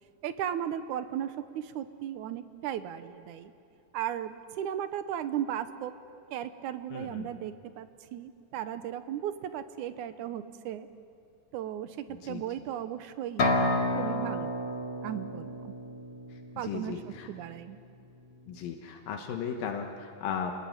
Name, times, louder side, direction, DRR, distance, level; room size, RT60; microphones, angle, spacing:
voice 1, 0.2-3.5 3.9-5.9 6.3-10.9 11.5-13.5 14.0-14.5 15.0-15.7 16.6-17.8, right 10 dB, 70° right, 11 dB, 2.1 m, -36 dB
voice 2, 6.9-7.3 12.1-12.4 16.3-17.3 18.5-20.5, left 7 dB, 80° left, 3 dB, 3.0 m, -36 dB
sound 1, 13.4-17.1, left 1 dB, 45° left, 2.5 m, -30 dB
28.0 x 20.5 x 8.9 m, 2.4 s
omnidirectional pair, 4.0 m